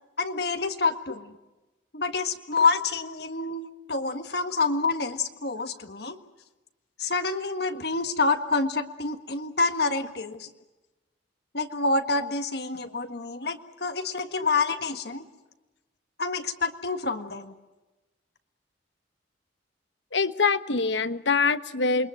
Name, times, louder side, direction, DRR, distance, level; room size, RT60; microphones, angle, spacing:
voice 1, 0.2-1.3 1.9-6.2 7.0-10.5 11.5-15.2 16.2-17.5, left 3 dB, 55° left, 7 dB, 1.7 m, -27 dB
voice 2, 20.1-22.1, left 4 dB, 75° left, 12 dB, 1.2 m, -24 dB
28.0 x 22.5 x 7.7 m, 1.1 s
head